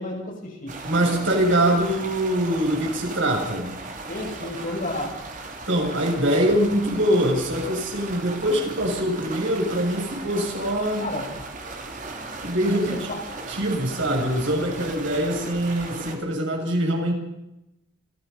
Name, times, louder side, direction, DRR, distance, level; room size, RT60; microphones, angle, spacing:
voice 1, 0.0-0.8 4.1-5.3 11.0-11.3 12.9-13.2 14.8-15.0, left 1 dB, 45° left, 0 dB, 7.0 m, -32 dB
sound 1, 0.7-16.2, right 3 dB, 45° right, 3.2 m, -37 dB
voice 2, 0.8-3.8 5.7-11.1 12.4-13.0 13.5-17.1, right 1 dB, 85° right, 0 dB, 7.3 m, -23 dB
28.0 x 17.0 x 5.5 m, 0.89 s
head